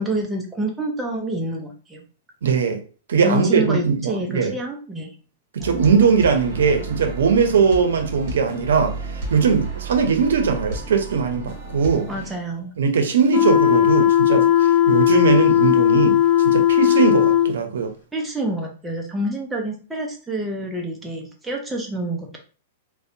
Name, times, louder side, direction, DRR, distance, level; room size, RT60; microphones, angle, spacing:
voice 1, 0.0-2.0 3.2-5.1 12.1-12.7 18.1-22.4, right 1 dB, 5° right, 0.4 m, -27 dB
voice 2, 2.4-2.8 3.1-4.5 5.5-12.1 12.8-17.9, right 6 dB, 90° right, 0.5 m, -20 dB
sound 1, 5.6-12.8, right 2 dB, 40° right, 1.3 m, -32 dB
sound 2, 13.3-17.5, left 11 dB, 40° left, 0.7 m, -16 dB
2.5 x 2.1 x 2.7 m
supercardioid pair, 165°, 0 cm